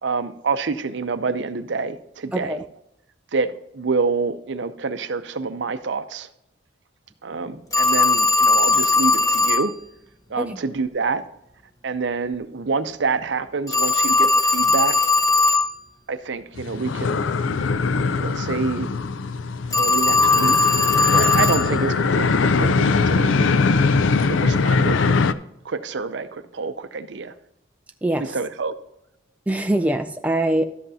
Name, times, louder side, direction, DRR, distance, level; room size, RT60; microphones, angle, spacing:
voice 1, 0.0-2.6 3.3-6.3 7.2-9.7 10.3-11.2 11.8-14.9 16.1-17.2 18.1-18.9 19.8-20.7 21.1-23.4 24.2-25.1 25.7-27.3 28.3-28.7, right 4 dB, 65° right, 11 dB, 0.6 m, -27 dB
voice 2, 2.3-2.7 10.4-10.6 28.0-28.4 29.5-30.6, right 1 dB, 5° right, 6 dB, 0.3 m, -23 dB
Telephone, 7.7-9.7 13.7-15.7 19.7-21.7, left 3 dB, 15° left, 0.7 m, -18 dB
sound 1, 16.6-25.3, left 4 dB, 75° left, 0.4 m, -21 dB
12.0 x 7.8 x 2.8 m, 0.81 s
head